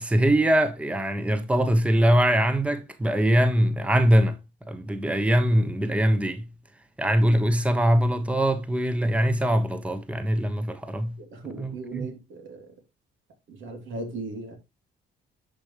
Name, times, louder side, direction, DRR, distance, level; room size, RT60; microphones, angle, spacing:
voice 1, 0.0-4.3 4.7-6.4 7.0-11.1 11.6-12.1, right 1 dB, 5° right, 1.0 m, -22 dB
voice 2, 11.2-12.7 13.5-14.6, right 3 dB, 75° right, 3.0 m, -37 dB
10.0 x 5.3 x 3.1 m
cardioid pair, 90°, 20 cm